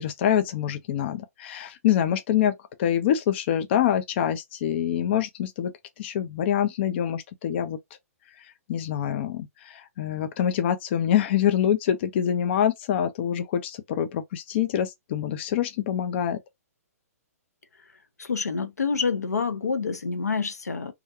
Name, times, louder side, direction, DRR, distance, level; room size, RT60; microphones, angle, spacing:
voice 1, 0.0-5.7 6.0-7.8 8.4-16.4, left 10 dB, 45° left, 0.4 m, -25 dB
voice 2, 18.2-20.9, left 5 dB, 85° left, 0.6 m, -27 dB
2.4 x 2.1 x 2.8 m
figure-of-eight pair, 125°, 8 cm